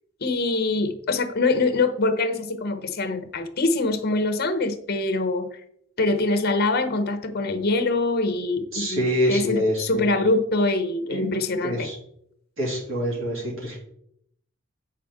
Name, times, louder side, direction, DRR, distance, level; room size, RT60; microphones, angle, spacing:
voice 1, 0.2-5.6 6.0-11.9, left 2 dB, 50° left, 9 dB, 0.8 m, -24 dB
voice 2, 8.7-10.1 11.1-11.2 11.6-12.0 12.6-13.8, equal, 75° right, -4 dB, 2.7 m, -26 dB
7.8 x 5.8 x 3.6 m, 0.72 s
head